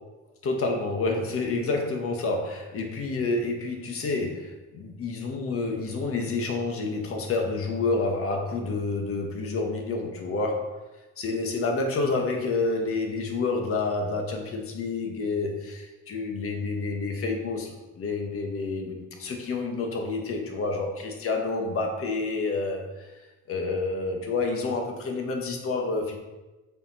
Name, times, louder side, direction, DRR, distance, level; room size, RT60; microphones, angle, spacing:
voice 1, 0.4-10.7 11.2-23.1 23.5-26.2, left 3 dB, 45° left, 2 dB, 1.5 m, -29 dB
7.0 x 4.8 x 5.6 m, 1.1 s
cardioid pair, 125°, 30 cm